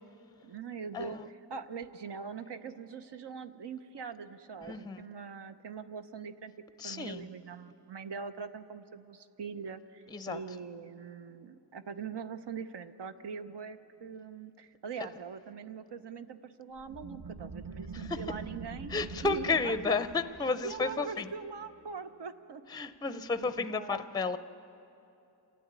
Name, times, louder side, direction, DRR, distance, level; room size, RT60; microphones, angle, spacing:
voice 1, 0.4-6.5 6.8-18.9 19.2-20.0 20.6-22.6 23.1-24.0, right 5 dB, 80° right, 9 dB, 0.9 m, -42 dB
voice 2, 4.7-5.0 6.8-7.3 10.1-10.4 18.1-18.2 18.9-21.3 22.7-24.4, left 4 dB, 10° left, 11 dB, 0.4 m, -32 dB
sound 1, 16.8-22.1, right 4 dB, 45° right, 0.7 m, -45 dB
27.5 x 13.0 x 9.5 m, 2.8 s
wide cardioid pair, 130°, 41 cm